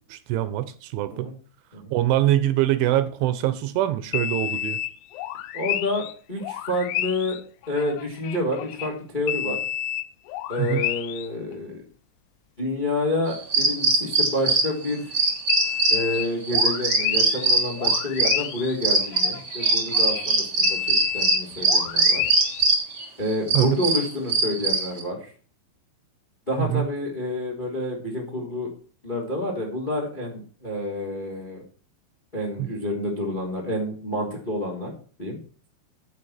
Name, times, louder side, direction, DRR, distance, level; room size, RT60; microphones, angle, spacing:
voice 1, 0.1-1.3 1.9-4.8 10.6-10.9 23.5-23.8 26.6-26.9 32.6-32.7, right 13 dB, 75° right, 13 dB, 3.3 m, -23 dB
sound 1, 4.1-6.1 6.4-8.9 9.3-11.3 11.5-11.6 14.7-22.7, left 12 dB, 90° left, 2.4 m, -31 dB
voice 2, 5.5-7.4 7.7-9.6 10.5-11.8 12.6-15.1 15.9-22.2 23.2-25.3 26.5-28.7 29.0-31.6 32.3-34.9 35.2-35.4, left 1 dB, 10° left, -1 dB, 2.5 m, -28 dB
sound 2, 13.3-25.0, right 3 dB, 25° right, 2.5 m, -21 dB
14.5 x 7.3 x 4.4 m, 0.41 s
omnidirectional pair, 5.8 m